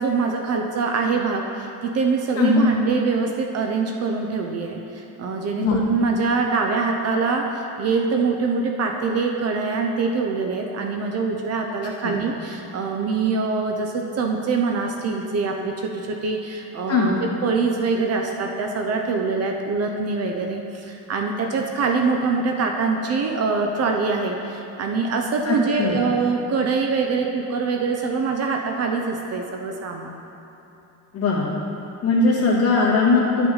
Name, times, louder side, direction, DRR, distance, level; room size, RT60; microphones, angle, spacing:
voice 1, 0.0-30.2, right 4 dB, 40° right, 3 dB, 0.6 m, -24 dB
voice 2, 2.4-2.7 5.5-5.8 12.0-12.1 16.9-17.2 25.5-26.0 31.1-31.5 32.0-33.5, left 3 dB, 40° left, -6 dB, 2.1 m, -19 dB
11.5 x 5.8 x 4.0 m, 3.0 s
cardioid pair, 140°, 37 cm